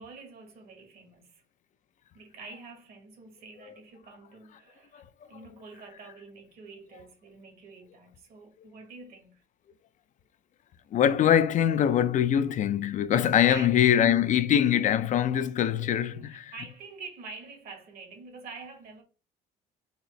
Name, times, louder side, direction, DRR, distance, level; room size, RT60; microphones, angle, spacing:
voice 1, 0.0-1.4 2.1-9.4 13.5-14.0 16.1-19.0, right 4 dB, 65° right, 1.4 m, -47 dB
voice 2, 10.9-16.5, left 10 dB, 50° left, 0.4 m, -23 dB
4.1 x 2.8 x 3.1 m
cardioid pair, 110°, 17 cm